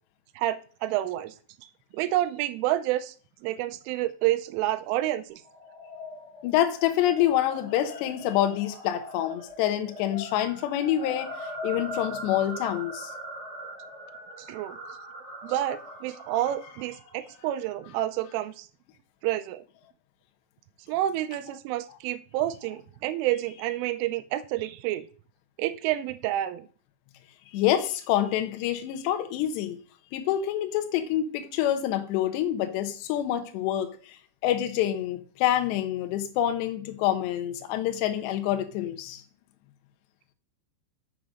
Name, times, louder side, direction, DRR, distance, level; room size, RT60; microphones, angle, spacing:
voice 1, 0.4-1.3 1.9-3.2 3.4-5.4 14.4-14.8 15.4-18.7 19.2-19.6 20.9-25.0 25.6-26.7, right 14 dB, 85° right, 3.0 m, -29 dB
sound 1, 5.4-17.8, left 1 dB, 5° right, 4.1 m, -41 dB
voice 2, 6.4-13.1 27.5-29.8 30.1-34.2 34.4-39.2, left 11 dB, 75° left, 2.8 m, -27 dB
6.9 x 6.3 x 6.3 m
omnidirectional pair, 5.9 m